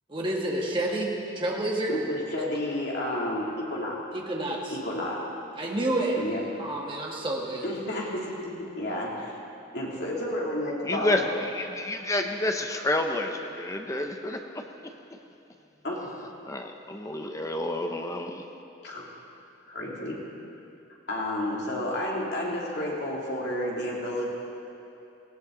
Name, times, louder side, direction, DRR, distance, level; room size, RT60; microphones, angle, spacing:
voice 1, 0.1-1.9 4.1-4.8 5.6-6.2 6.6-7.7, right 1 dB, 25° right, -2 dB, 1.8 m, -29 dB
voice 2, 1.9-4.0 4.8-5.2 6.2-6.4 7.6-9.3 9.7-11.2 15.8-16.1 18.8-19.0 19.7-20.2 21.1-24.2, left 1 dB, 55° left, -4 dB, 2.9 m, -31 dB
voice 3, 10.8-14.6 16.5-18.5, left 1 dB, 15° left, 4 dB, 0.7 m, -29 dB
18.5 x 17.0 x 3.9 m, 2.8 s
head